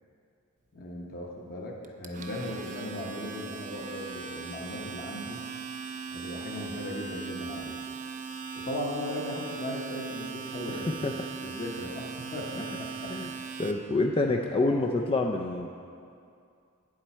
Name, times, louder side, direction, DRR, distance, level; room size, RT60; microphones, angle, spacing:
voice 1, 0.7-5.4 6.1-7.8 8.5-11.0 11.4-13.1, left 1 dB, 40° left, -2 dB, 1.0 m, -37 dB
Domestic sounds home sounds, 1.8-13.7, right 5 dB, 35° right, 0.5 m, -39 dB
voice 2, 10.7-11.1 13.1-13.3 13.6-15.7, left 2 dB, 25° left, 2 dB, 0.3 m, -27 dB
9.2 x 7.5 x 4.3 m, 2.4 s
head